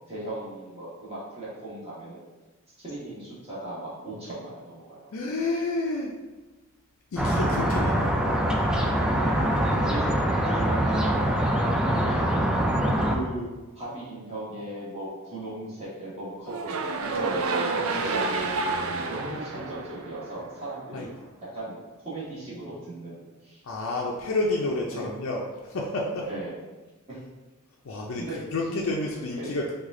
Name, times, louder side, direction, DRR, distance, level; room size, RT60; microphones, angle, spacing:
voice 1, 0.1-2.3 2.8-5.1 9.2-9.4 9.9-10.2 10.4-11.1 12.0-12.3 13.1-21.1 21.5-23.6 24.9-25.1 26.2-26.6 27.1-27.2 28.2-28.4 28.7-28.8 29.3-29.6, right 1 dB, 30° right, -9 dB, 1.4 m, -37 dB
voice 2, 5.1-6.1 7.1-8.2 20.9-21.1 23.6-26.3 27.8-29.7, left 2 dB, 70° left, -2 dB, 0.5 m, -29 dB
sound 1, 7.2-13.2, right 1 dB, 5° right, 0.3 m, -24 dB
sound 2, 16.5-20.7, right 3 dB, 70° right, 0.4 m, -29 dB
4.8 x 2.4 x 3.7 m, 1.2 s
head